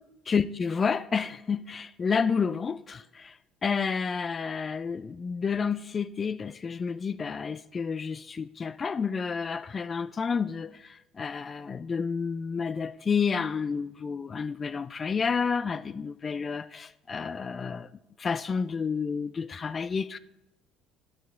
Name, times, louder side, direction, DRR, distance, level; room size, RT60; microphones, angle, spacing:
voice 1, 0.3-17.9 18.2-20.2, left 5 dB, 35° left, 0.3 m, -30 dB
12.0 x 7.3 x 3.6 m
figure-of-eight pair, 55°, 0 cm